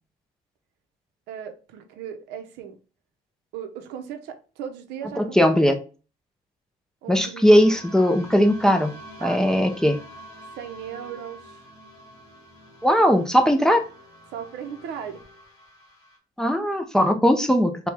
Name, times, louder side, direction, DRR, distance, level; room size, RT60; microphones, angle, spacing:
voice 1, 1.3-2.8 3.5-5.4 7.0-7.5 9.2-9.4 10.6-11.6 14.3-15.2, right 8 dB, 85° right, 0.7 m, -37 dB
voice 2, 5.2-5.7 7.1-8.9 9.2-10.0 12.8-13.8 16.4-17.9, equal, 5° left, 0.5 m, -19 dB
sound 1, 7.4-16.2, equal, 25° left, 1.7 m, -45 dB
4.4 x 2.3 x 3.3 m
cardioid pair, 110°, 17 cm